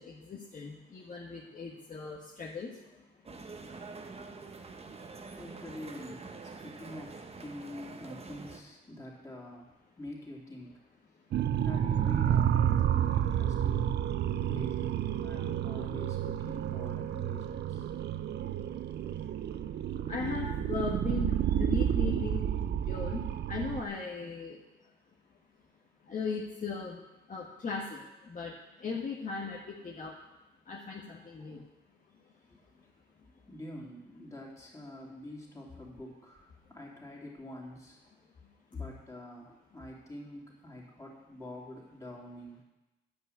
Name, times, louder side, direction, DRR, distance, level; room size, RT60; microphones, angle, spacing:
voice 1, 0.0-3.4 4.7-4.9 14.3-14.5 19.2-19.7 20.1-22.4 22.7-24.6 26.0-27.0 27.3-30.1 30.6-31.6 32.1-32.2 38.4-38.5, left 4 dB, 40° left, -2 dB, 1.5 m, -38 dB
sound 1, 3.3-8.6, right 4 dB, 30° right, 1.1 m, -46 dB
voice 2, 5.3-6.3 6.6-10.7 11.6-14.0 14.5-14.9 15.2-17.9 32.5-32.8 33.5-38.0 38.7-42.6, left 1 dB, 15° left, -3 dB, 3.2 m, -46 dB
sound 2, 11.3-23.8, right 10 dB, 60° right, 0.6 m, -30 dB
9.9 x 5.7 x 7.9 m, 1.0 s
cardioid pair, 90°, 20 cm